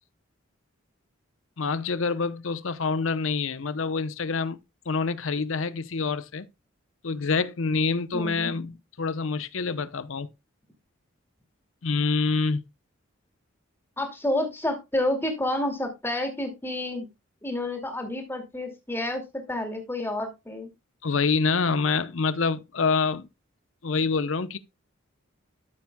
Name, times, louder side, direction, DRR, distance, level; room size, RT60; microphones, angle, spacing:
voice 1, 1.6-4.6 4.9-6.5 7.0-10.3 11.8-12.6 21.0-23.3 23.8-24.6, left 4 dB, 75° left, 0.7 m, -26 dB
voice 2, 8.1-8.5 14.0-17.1 17.4-19.2 19.5-20.7, left 1 dB, 10° left, 2.4 m, -29 dB
13.0 x 7.3 x 2.2 m
head